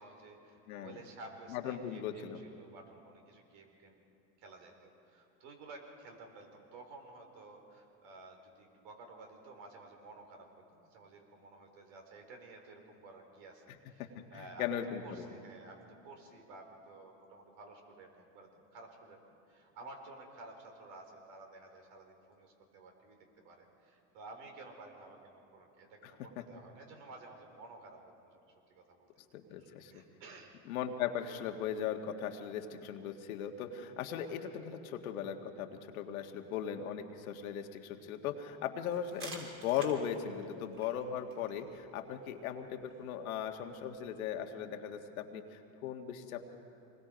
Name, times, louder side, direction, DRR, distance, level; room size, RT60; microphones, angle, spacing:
voice 1, 0.0-4.0 4.4-14.8 15.0-19.2 19.5-29.1 29.6-30.5 34.1-34.2, right 2 dB, 65° right, 3 dB, 4.4 m, -53 dB
voice 2, 1.5-2.4 14.0-15.3 26.0-26.1 29.3-30.0 30.7-46.6, left 8 dB, 80° left, 4 dB, 1.7 m, -38 dB
sound 1, 38.9-44.4, right 2 dB, 30° right, 4.1 m, -53 dB
26.0 x 20.5 x 5.1 m, 2.7 s
supercardioid pair, 110°, 41 cm